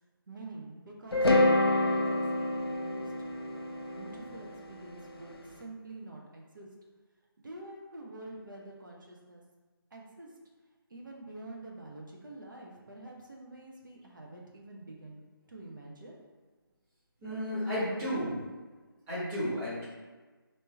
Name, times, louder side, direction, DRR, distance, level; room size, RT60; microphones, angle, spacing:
voice 1, 0.3-3.1 3.9-5.3 5.6-6.7 7.4-9.4 9.9-10.3 10.9-15.2 15.5-16.2 17.3-17.6, right 2 dB, 55° right, -1 dB, 0.9 m, -47 dB
sound 1, 1.1-5.3, left 1 dB, 90° left, 0.6 m, -27 dB
voice 2, 17.2-18.4 19.1-19.8, equal, 15° right, -13 dB, 1.3 m, -32 dB
3.5 x 2.8 x 4.4 m, 1.3 s
figure-of-eight pair, 160°, 13 cm